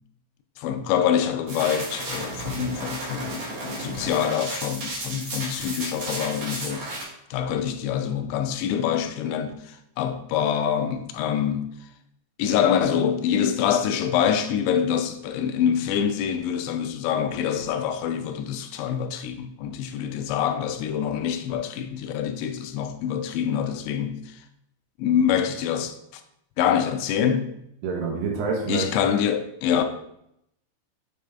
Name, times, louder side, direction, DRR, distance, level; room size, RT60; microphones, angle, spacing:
voice 1, 0.6-6.9 7.3-11.7 12.4-24.4 25.0-26.2 26.6-27.5 28.7-29.8, left 8 dB, 85° left, 2.9 m, -25 dB
sound 1, 1.5-7.0, right 2 dB, 50° right, 2.0 m, -33 dB
voice 2, 27.8-28.9, right 4 dB, 75° right, 2.9 m, -27 dB
7.3 x 5.1 x 3.4 m
omnidirectional pair, 5.1 m